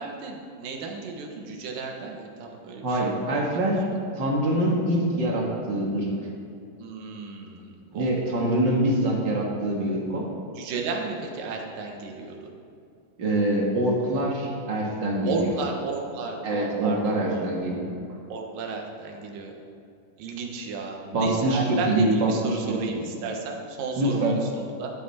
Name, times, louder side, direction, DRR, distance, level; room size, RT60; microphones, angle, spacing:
voice 1, 0.0-3.2 6.8-8.2 10.6-12.4 15.2-17.5 18.3-19.5 20.2-24.9, right 4 dB, 80° right, 1 dB, 3.0 m, -33 dB
voice 2, 2.8-3.9 4.2-6.1 7.9-10.3 13.2-15.5 16.4-17.9 21.1-23.0 24.0-24.4, right 1 dB, 40° right, -2 dB, 2.0 m, -25 dB
13.0 x 11.5 x 4.3 m, 2.5 s
omnidirectional pair, 3.9 m